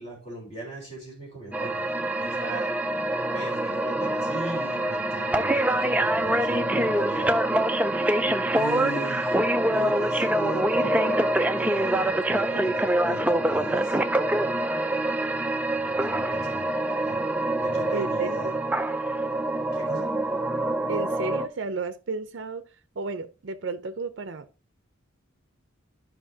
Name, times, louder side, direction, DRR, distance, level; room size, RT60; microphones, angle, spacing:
voice 1, 0.0-1.8 2.2-2.7 3.3-7.4 8.5-11.2 11.6-14.0 15.7-16.7 17.1-17.2 17.6-18.5 19.7-20.1, right 2 dB, 30° left, 3.7 m, -38 dB
sound 1, 1.5-21.5, right 1 dB, 5° right, 0.4 m, -25 dB
voice 2, 17.9-18.6 20.9-22.6 23.0-24.5, right 3 dB, 60° right, 0.5 m, -32 dB
12.5 x 5.5 x 2.7 m
head